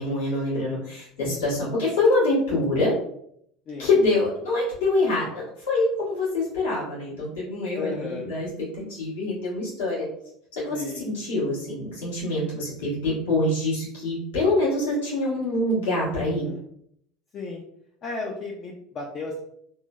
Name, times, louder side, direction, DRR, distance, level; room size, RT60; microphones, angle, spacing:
voice 1, 0.0-2.9 3.8-8.5 8.7-10.1 10.5-16.5, left 2 dB, 85° left, -8 dB, 1.4 m, -25 dB
voice 2, 1.2-1.6 3.7-3.9 7.7-8.3 10.7-11.0 16.1-16.7 17.3-17.6 18.0-19.4, left 3 dB, 45° left, -1 dB, 0.4 m, -34 dB
3.0 x 2.1 x 2.3 m, 0.70 s
hypercardioid pair, 90°, 0 cm